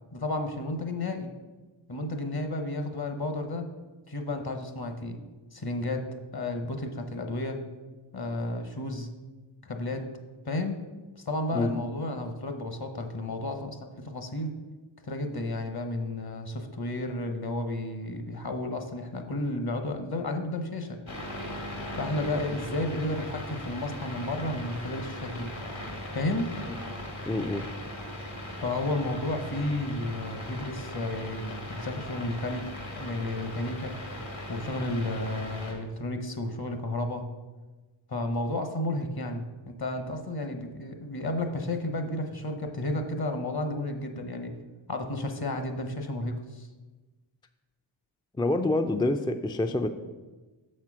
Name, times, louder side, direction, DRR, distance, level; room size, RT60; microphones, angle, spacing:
voice 1, 0.1-1.3 1.9-3.7 4.1-5.2 5.5-7.6 8.1-9.1 9.6-10.1 10.5-10.8 11.2-14.5 15.1-21.0 22.0-25.5 26.1-26.6 28.6-32.7 32.9-33.9 34.5-37.3 38.1-44.6 44.9-46.7, left 1 dB, 50° left, 6 dB, 1.0 m, -32 dB
sound 1, 21.1-35.7, left 1 dB, 70° left, 1.7 m, -39 dB
voice 2, 27.3-27.7 48.4-49.9, left 2 dB, 10° left, 6 dB, 0.3 m, -27 dB
6.6 x 4.4 x 6.0 m, 1.2 s
wide cardioid pair, 45°, 49 cm